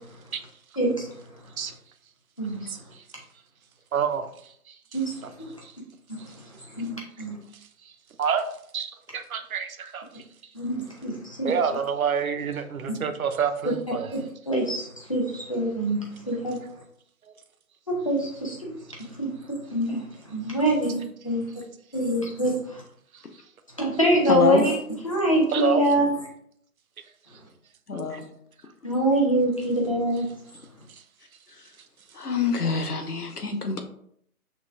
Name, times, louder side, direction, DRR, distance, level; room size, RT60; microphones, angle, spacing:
voice 1, 0.8-1.1 2.4-2.8 4.9-5.1 5.4-5.5 6.7-7.4 10.5-11.5 14.1-14.2 14.5-16.0 16.3-16.6 17.9-18.7 19.2-19.3 19.7-21.4 21.9-22.8 23.8-24.8 25.0-26.0 28.8-30.3, right 1 dB, 20° left, -2 dB, 0.6 m, -25 dB
voice 2, 3.9-4.2 4.7-4.8 5.2-5.3 5.6-5.7 8.2-8.5 8.7-10.2 11.4-14.1 23.1-23.2 25.5-25.8 28.1-28.2, right 7 dB, 65° right, 8 dB, 0.6 m, -27 dB
voice 3, 24.3-24.6 27.9-28.2 32.1-33.8, left 5 dB, 80° left, 6 dB, 0.9 m, -24 dB
5.9 x 2.2 x 3.5 m, 0.68 s
figure-of-eight pair, 150°, 46 cm